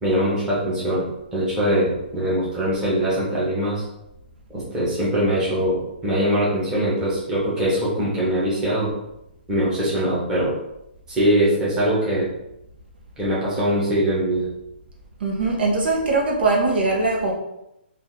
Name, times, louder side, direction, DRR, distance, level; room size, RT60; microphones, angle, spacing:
voice 1, 0.0-3.8 4.5-8.9 9.5-10.5 11.1-12.3 13.2-14.5, equal, 10° right, -8 dB, 1.2 m, -22 dB
voice 2, 15.2-17.3, right 3 dB, 65° right, -1 dB, 1.2 m, -21 dB
3.9 x 2.7 x 3.8 m, 0.85 s
hypercardioid pair, 160°, 6 cm